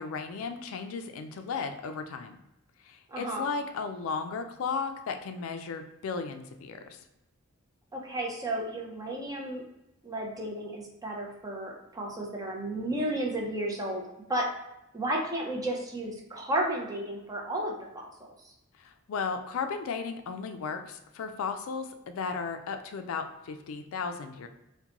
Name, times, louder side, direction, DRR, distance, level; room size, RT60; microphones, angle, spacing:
voice 1, 0.0-2.4 2.8-7.0 18.8-24.5, left 5 dB, 70° left, 7 dB, 0.3 m, -35 dB
voice 2, 3.1-3.5 7.9-9.6 10.0-14.0 14.3-14.4 14.9-18.5, right 1 dB, 20° right, -1 dB, 0.5 m, -33 dB
3.7 x 2.1 x 2.9 m, 0.89 s
head